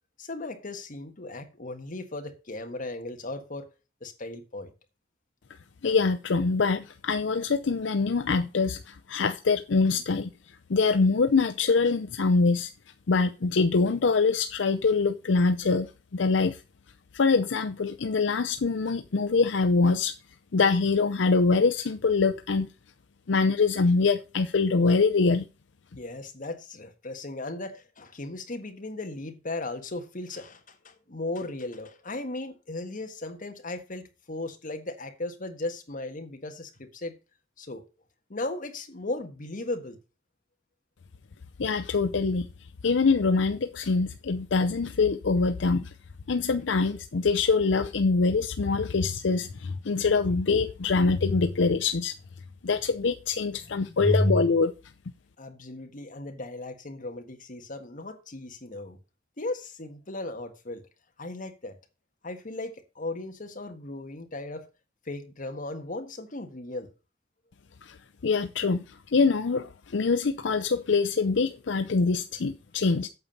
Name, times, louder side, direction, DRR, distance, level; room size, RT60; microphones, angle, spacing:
voice 1, 0.2-3.7 4.0-4.7 26.0-37.1 37.6-37.8 38.3-40.0 52.8-53.0 53.5-54.6 55.4-59.0 59.4-60.8 61.2-61.8 62.2-64.7 65.0-66.9, left 2 dB, 45° left, 1.5 m, -35 dB
voice 2, 5.8-10.3 10.7-12.7 13.1-15.9 16.1-16.6 17.1-20.1 20.5-22.7 23.3-25.5 41.6-42.5 42.8-45.9 46.3-52.1 52.6-54.7 67.8-68.0 68.2-73.1, left 4 dB, 70° left, 0.6 m, -24 dB
8.6 x 7.2 x 5.3 m
head